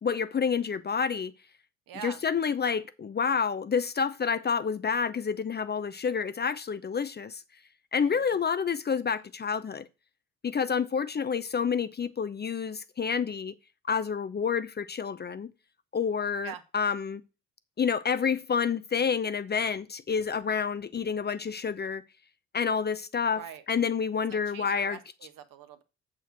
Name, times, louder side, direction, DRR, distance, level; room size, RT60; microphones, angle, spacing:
voice 1, 0.0-1.3 2.0-7.4 7.9-9.9 10.4-13.5 13.9-15.5 15.9-17.2 17.8-22.0 22.5-23.4 23.7-25.0, left 6 dB, 25° left, 0.7 m, -29 dB
voice 2, 1.9-2.2 8.0-8.4 16.4-16.6 23.3-23.6 24.3-25.8, right 9 dB, 60° right, 1.4 m, -44 dB
7.9 x 4.5 x 6.3 m
figure-of-eight pair, 45°, 38 cm